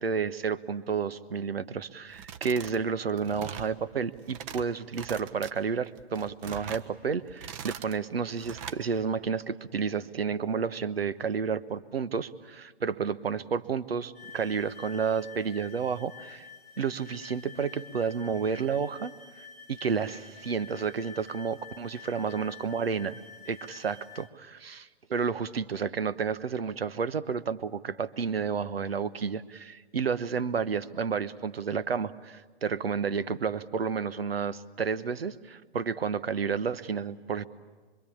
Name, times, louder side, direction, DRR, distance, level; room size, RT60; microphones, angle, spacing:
voice 1, 0.0-16.5 16.8-19.1 19.7-23.2 23.5-37.5, right 6 dB, 70° right, 15 dB, 1.2 m, -31 dB
sound 1, 2.1-2.8 3.1-3.7 4.2-4.6 4.9-5.5 6.0-6.9 7.3-8.0 8.4-8.8, right 8 dB, 30° right, 1.3 m, -41 dB
sound 2, 14.1-24.3, left 6 dB, ahead, 2.2 m, -49 dB
26.0 x 24.0 x 8.6 m, 1.4 s
figure-of-eight pair, 120°, 31 cm